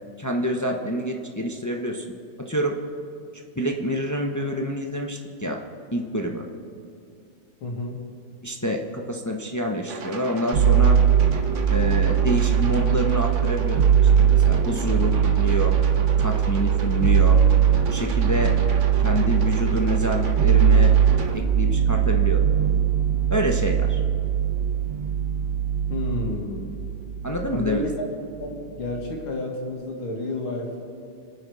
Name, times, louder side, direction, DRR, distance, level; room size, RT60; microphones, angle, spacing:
voice 1, 0.2-2.0 2.4-2.8 3.6-5.6 5.9-6.5 8.4-11.0 11.7-13.8 14.2-15.7 16.2-17.4 17.9-18.5 19.0-20.9 21.3-22.4 23.3-24.0 27.2-27.8, equal, 25° left, 2 dB, 0.3 m, -27 dB
voice 2, 7.6-8.0 14.9-15.1 25.9-26.7 27.5-28.0 28.4-30.7, left 2 dB, 85° left, 0 dB, 2.9 m, -30 dB
sound 1, 9.9-21.4, right 4 dB, 45° right, 1.1 m, -35 dB
sound 2, 10.5-28.0 28.3-29.1, right 8 dB, 80° right, 2.1 m, -20 dB
26.5 x 9.6 x 4.9 m, 2.5 s
omnidirectional pair, 2.2 m